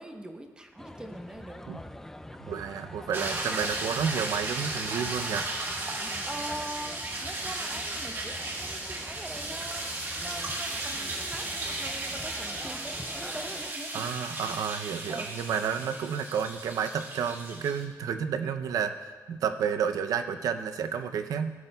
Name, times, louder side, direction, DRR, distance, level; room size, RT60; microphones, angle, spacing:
voice 1, 0.0-1.6 6.0-14.1 15.1-15.4, right 1 dB, 15° right, 5 dB, 0.8 m, -43 dB
sound 1, 0.8-13.7, left 1 dB, 5° left, 0.4 m, -45 dB
voice 2, 2.4-5.5 13.9-21.5, right 7 dB, 80° right, 9 dB, 0.5 m, -31 dB
sound 2, 3.1-17.8, right 2 dB, 40° right, 1.2 m, -35 dB
15.5 x 8.0 x 2.3 m, 1.5 s
cardioid pair, 105°, 6 cm